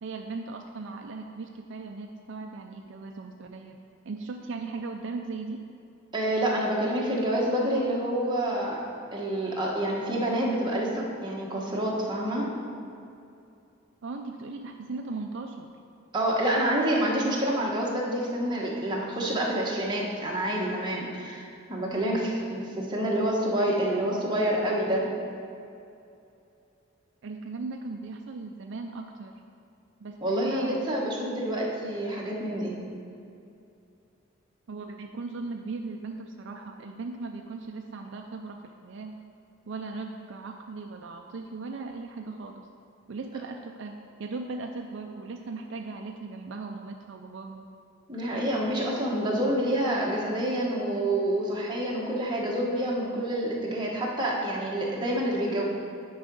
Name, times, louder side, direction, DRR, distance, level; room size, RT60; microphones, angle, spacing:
voice 1, 0.0-5.6 14.0-15.7 27.2-29.3 30.0-30.8 34.7-38.6 38.8-39.2 39.7-42.7 43.1-47.7, right 3 dB, 60° right, 3 dB, 0.4 m, -38 dB
voice 2, 6.1-12.5 16.1-25.1 30.2-32.7 48.1-55.6, right 1 dB, 20° right, -3 dB, 1.2 m, -28 dB
9.6 x 4.8 x 5.3 m, 2.6 s
head